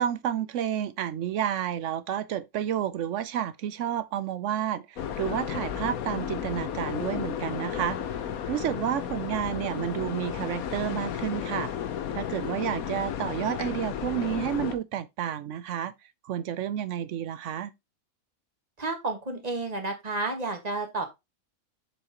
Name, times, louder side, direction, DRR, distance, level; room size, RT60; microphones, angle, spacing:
voice 1, 0.0-8.0 8.5-11.7 12.1-15.9 16.2-17.7, right 10 dB, 65° right, 0.8 m, -30 dB
sound 1, 5.0-14.7, left 9 dB, 80° left, 1.3 m, -33 dB
voice 2, 18.8-21.0, right 3 dB, 30° right, 1.6 m, -31 dB
7.0 x 6.2 x 2.9 m
omnidirectional pair, 1.5 m